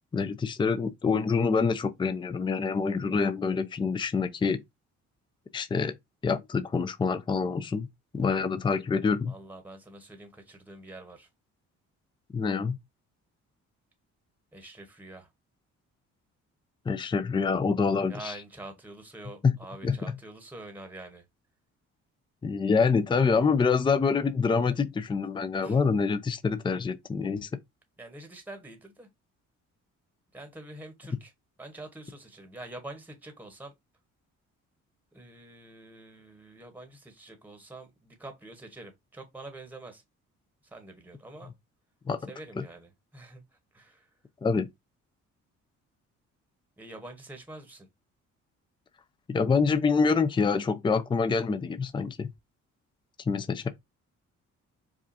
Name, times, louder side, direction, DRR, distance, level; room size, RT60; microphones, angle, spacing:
voice 1, 0.1-4.6 5.5-5.9 6.2-7.9 8.1-9.3 12.3-12.8 16.9-18.3 19.4-19.6 19.8-20.0 22.4-27.5 42.1-42.2 44.4-44.7 49.3-52.3 53.3-53.7, left 5 dB, 15° left, 0.4 m, -26 dB
voice 2, 9.3-11.3 14.5-15.3 18.0-21.2 25.6-25.8 28.0-29.1 30.3-31.3 31.6-33.7 35.1-40.0 40.6-41.5 42.3-43.4 43.7-44.1 46.8-47.9, right 2 dB, 5° right, 1.0 m, -46 dB
4.8 x 2.4 x 2.7 m
cardioid pair, 90°, 30 cm